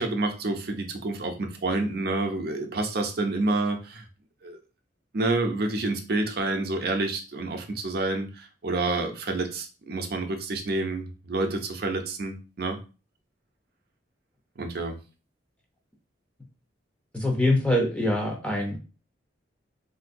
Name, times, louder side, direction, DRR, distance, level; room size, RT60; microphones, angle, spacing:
voice 1, 0.0-4.0 4.4-4.6 5.1-12.8 14.6-15.0, right 2 dB, 55° right, 4 dB, 0.5 m, -28 dB
voice 2, 17.1-18.8, left 1 dB, 5° left, 0 dB, 0.6 m, -24 dB
3.6 x 2.6 x 2.5 m, 0.33 s
head